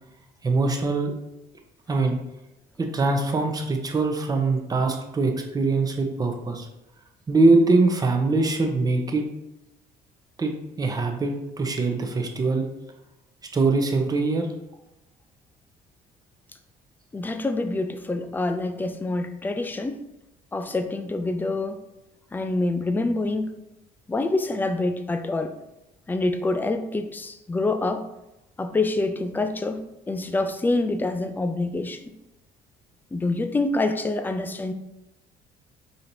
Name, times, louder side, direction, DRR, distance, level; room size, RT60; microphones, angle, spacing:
voice 1, 0.4-1.1 1.9-2.2 2.8-6.7 7.3-9.2 10.4-12.7 13.5-14.5, right 3 dB, 20° right, 3 dB, 0.6 m, -22 dB
voice 2, 17.1-20.0 20.5-21.8 22.3-23.6 24.1-25.5 26.1-28.0 28.6-32.1 33.1-34.7, left 2 dB, 10° left, 8 dB, 0.3 m, -26 dB
5.0 x 2.9 x 2.6 m, 0.92 s
cardioid pair, 110°, 17 cm